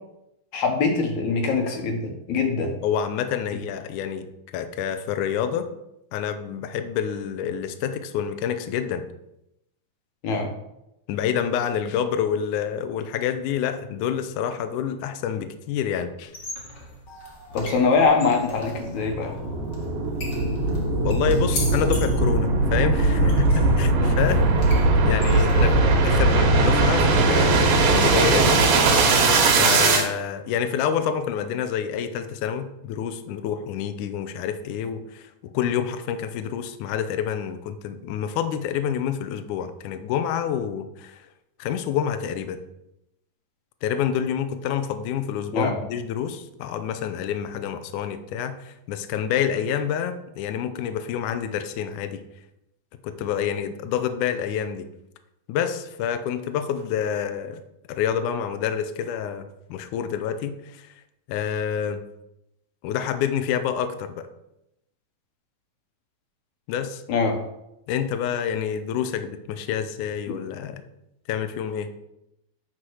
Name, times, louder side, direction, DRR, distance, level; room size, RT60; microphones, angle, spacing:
voice 1, 0.5-2.7 10.2-10.5 17.5-19.3 24.0-24.1 25.4-25.5 45.5-45.7 67.1-67.4, left 4 dB, 65° left, 3 dB, 2.2 m, -23 dB
voice 2, 2.8-4.3 4.5-5.7 6.1-9.0 11.1-16.3 21.0-24.5 25.0-25.7 26.0-27.6 27.9-28.7 29.6-35.3 35.5-41.2 41.6-42.6 43.8-52.2 53.0-54.9 55.5-57.6 57.9-60.9 61.3-62.0 62.8-64.3 66.7-67.0 67.9-70.8 71.3-71.9, left 8 dB, 85° left, 9 dB, 1.8 m, -27 dB
sound 1, 16.2-26.1, left 1 dB, 40° left, 1.7 m, -39 dB
sound 2, 18.5-30.1, right 2 dB, 70° right, 3.0 m, -20 dB
9.4 x 4.4 x 6.4 m, 0.84 s
omnidirectional pair, 4.4 m